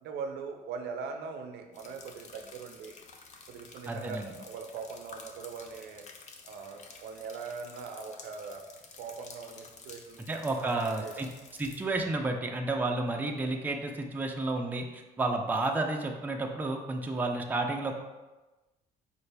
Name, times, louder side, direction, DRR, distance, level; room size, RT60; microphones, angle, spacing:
voice 1, 0.0-2.9 3.5-6.0 6.4-8.6 9.0-11.3, right 5 dB, 75° right, 4 dB, 0.5 m, -41 dB
sound 1, 1.7-11.8, left 4 dB, 45° left, 0.5 m, -51 dB
voice 2, 3.9-4.3 10.3-11.3 11.6-18.0, right 2 dB, 10° right, 2 dB, 0.4 m, -31 dB
5.3 x 2.5 x 3.3 m, 1.1 s
cardioid pair, 110°, 17 cm